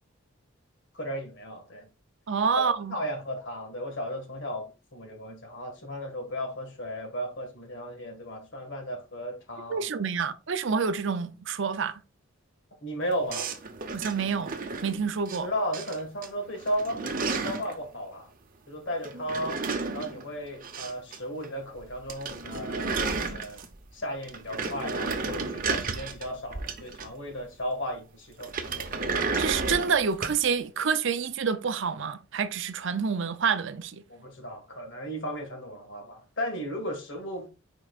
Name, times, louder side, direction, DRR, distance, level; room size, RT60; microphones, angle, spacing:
voice 1, 0.9-1.9 2.9-9.8 12.8-13.5 15.3-18.3 18.7-19.6 19.9-23.6 23.9-28.9 34.1-37.5, equal, 60° left, 1.8 m, -35 dB
voice 2, 2.3-2.9 9.7-12.0 13.9-14.5 14.8-15.5 29.4-34.0, right 6 dB, 60° right, 0.6 m, -28 dB
sound 1, 13.3-15.4 15.7-16.3 16.6-17.7 19.0-21.2 21.4-21.5 21.8-21.9 22.1-23.9 24.2-27.3 28.4-30.5, right 4 dB, 40° right, 0.8 m, -32 dB
9.7 x 4.5 x 2.4 m
head